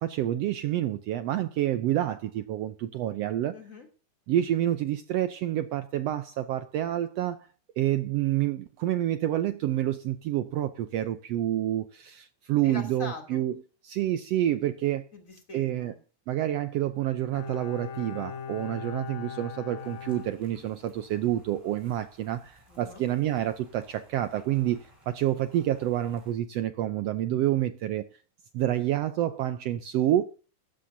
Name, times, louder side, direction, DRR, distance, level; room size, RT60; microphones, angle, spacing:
voice 1, 0.0-3.5 4.3-7.5 7.8-13.5 13.8-15.1 15.5-15.9 16.3-28.0 28.5-30.2, right 12 dB, 75° right, 1.5 m, -28 dB
voice 2, 3.5-3.9 12.6-13.5 15.1-15.9 22.7-23.0, left 4 dB, 25° left, 3.0 m, -43 dB
Bowed string instrument, 17.3-21.1 21.4-21.5, left 7 dB, 75° left, 2.7 m, -40 dB
sound 1, 19.8-26.3, equal, 10° right, 5.2 m, -59 dB
16.0 x 13.0 x 2.7 m
omnidirectional pair, 3.5 m